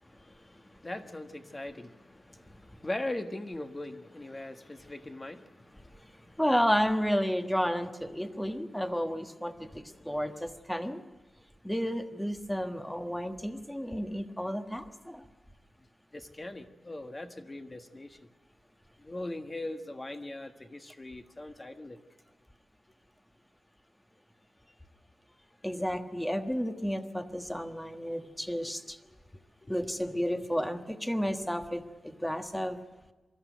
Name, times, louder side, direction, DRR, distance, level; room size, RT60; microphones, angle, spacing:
voice 1, 0.0-6.4 8.2-8.3 8.7-8.8 9.5-10.5 16.1-18.3 19.0-22.0 29.3-30.7, left 1 dB, 25° left, 6 dB, 1.4 m, -41 dB
voice 2, 6.4-11.0 11.6-15.2 25.6-29.0 29.7-32.8, equal, 5° left, 7 dB, 1.3 m, -31 dB
24.0 x 13.5 x 9.2 m, 1.2 s
wide cardioid pair, 95°, 0 cm